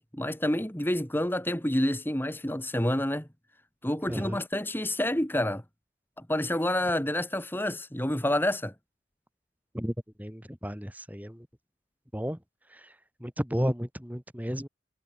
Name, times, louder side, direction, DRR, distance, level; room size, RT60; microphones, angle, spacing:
voice 1, 0.0-3.3 3.8-5.6 6.2-8.7, left 1 dB, 10° left, 2.3 m, -28 dB
voice 2, 4.1-4.4 9.7-11.5 12.1-12.4 12.7-12.9 13.2-14.7, equal, 10° right, 3.6 m, -33 dB
head